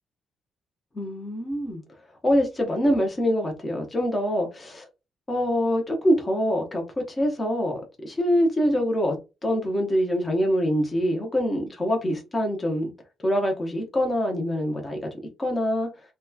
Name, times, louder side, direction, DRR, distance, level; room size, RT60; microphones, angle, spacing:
voice 1, 0.9-1.8 2.2-4.9 5.3-9.1 9.4-12.9 13.2-15.1 15.4-15.9, equal, 25° left, 0.8 m, -24 dB
2.9 x 2.2 x 2.3 m
cardioid pair, 90°, 0 cm